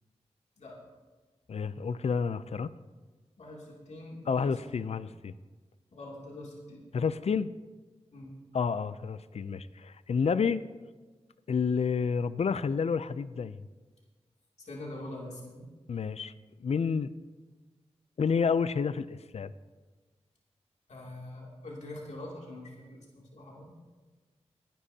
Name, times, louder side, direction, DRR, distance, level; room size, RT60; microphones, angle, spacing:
voice 1, 1.5-2.7 4.3-5.3 6.9-7.5 8.5-10.6 11.5-13.6 15.9-16.3 16.6-17.1 18.2-19.5, left 5 dB, 65° left, 15 dB, 0.5 m, -29 dB
voice 2, 3.4-4.6 5.9-6.8 8.1-8.3 14.6-15.7 20.9-23.7, left 1 dB, 80° left, -3 dB, 2.8 m, -44 dB
23.5 x 10.0 x 2.8 m, 1.3 s
wide cardioid pair, 80°, 11 cm